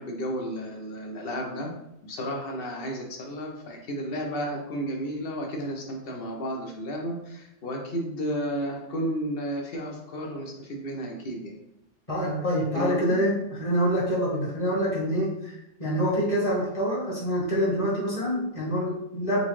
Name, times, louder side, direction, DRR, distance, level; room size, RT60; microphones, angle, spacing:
voice 1, 0.0-1.7 2.0-11.5 12.7-13.2, equal, 55° left, 1 dB, 1.0 m, -32 dB
voice 2, 12.1-13.3 13.6-19.4, equal, 30° left, -6 dB, 1.5 m, -26 dB
4.1 x 3.7 x 3.1 m, 0.81 s
omnidirectional pair, 1.3 m